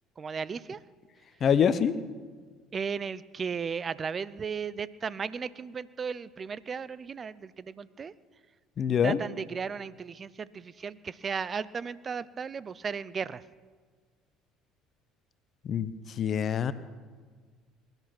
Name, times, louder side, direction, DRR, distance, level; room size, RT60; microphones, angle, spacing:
voice 1, 0.2-0.8 2.7-8.1 9.0-13.4, right 6 dB, 35° right, 19 dB, 0.6 m, -35 dB
voice 2, 1.4-1.9 8.8-9.2 15.6-15.9 16.2-16.7, left 8 dB, 45° left, 14 dB, 0.9 m, -25 dB
22.0 x 11.0 x 6.1 m, 1.5 s
hypercardioid pair, 60°, 0 cm